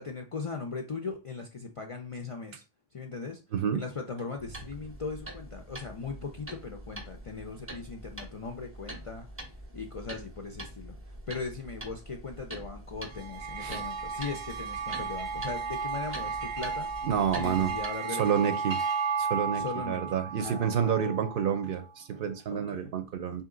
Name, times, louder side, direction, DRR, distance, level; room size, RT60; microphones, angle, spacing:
voice 1, 0.0-2.6 2.9-3.4 3.7-9.5 9.7-16.9 17.3-18.6 19.5-21.4 22.5-22.9, left 4 dB, 50° left, 3 dB, 0.4 m, -39 dB
voice 2, 3.5-3.8 13.6-13.8 17.0-17.7 18.1-18.8 19.2-23.4, right 8 dB, 65° right, 9 dB, 0.7 m, -29 dB
sound 1, 4.4-17.9, right 1 dB, 15° right, 0.5 m, -44 dB
sound 2, 13.1-21.7, right 5 dB, 85° right, 0.9 m, -34 dB
3.9 x 2.9 x 3.7 m, 0.31 s
omnidirectional pair, 1.1 m